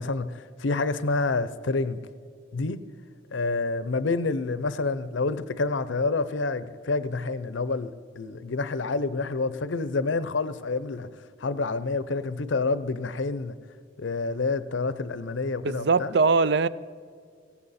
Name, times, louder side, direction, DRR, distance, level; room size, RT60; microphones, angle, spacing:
voice 1, 0.0-2.0 2.5-2.8 3.3-11.1 11.4-13.5 14.0-16.1, left 3 dB, 75° left, 0.6 m, -28 dB
voice 2, 15.6-16.7, right 4 dB, 60° right, 0.4 m, -21 dB
18.5 x 16.0 x 4.2 m
head